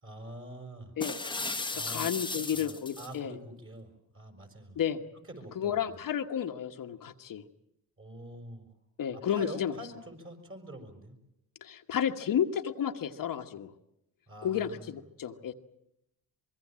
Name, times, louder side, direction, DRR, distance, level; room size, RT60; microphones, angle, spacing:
voice 1, 0.0-0.9 1.7-2.1 2.3-4.8 5.3-6.0 8.0-8.7 9.1-11.1 14.3-14.9, right 1 dB, 35° right, 6 dB, 6.2 m, -46 dB
sound 1, 1.0-3.1, left 3 dB, 10° left, 1.2 m, -35 dB
voice 2, 1.7-3.4 4.8-5.0 5.5-7.4 9.0-9.7 11.6-13.7 14.4-15.5, left 9 dB, 55° left, 5 dB, 1.3 m, -32 dB
25.0 x 22.5 x 7.5 m, 0.82 s
cardioid pair, 85°, 38 cm